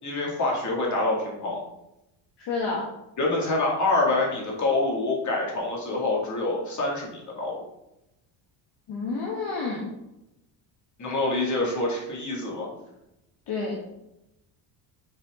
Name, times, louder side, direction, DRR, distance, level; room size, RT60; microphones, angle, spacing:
voice 1, 0.0-1.6 3.2-7.6 11.0-12.7, left 2 dB, 35° left, -3 dB, 2.4 m, -26 dB
voice 2, 2.4-2.9 8.9-9.9 13.5-13.8, left 4 dB, 55° left, -3 dB, 1.5 m, -29 dB
7.3 x 4.5 x 3.7 m, 0.89 s
cardioid pair, 115°, 50 cm